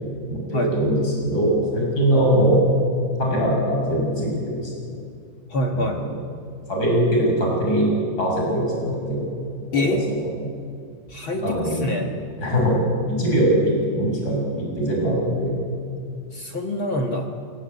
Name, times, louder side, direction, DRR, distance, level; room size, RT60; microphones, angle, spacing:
voice 1, 0.3-2.6 3.2-4.9 5.7-6.1 6.7-7.9 8.2-9.3 9.7-9.8 11.4-11.8 12.4-15.6, right 1 dB, 25° left, -2 dB, 7.2 m, -21 dB
voice 2, 5.5-6.0 9.7-10.0 11.1-12.1 16.3-17.3, left 1 dB, 50° left, 2 dB, 1.7 m, -25 dB
27.5 x 19.5 x 8.5 m, 2.3 s
omnidirectional pair, 4.2 m